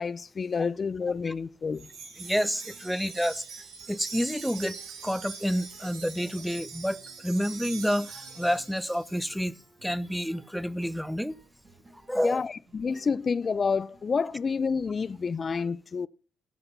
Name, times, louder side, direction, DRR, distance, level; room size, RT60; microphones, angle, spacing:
voice 1, 0.0-1.9 12.2-16.1, left 5 dB, 40° left, 0.5 m, -29 dB
sound 1, 1.6-15.3, right 1 dB, 40° right, 4.8 m, -59 dB
Wind chime, 1.7-9.2, right 5 dB, 85° right, 3.6 m, -43 dB
voice 2, 2.2-3.4 3.9-4.8 5.0-11.4 12.1-12.4, equal, ahead, 0.6 m, -29 dB
13.0 x 8.0 x 5.4 m
cardioid pair, 90°, 0 cm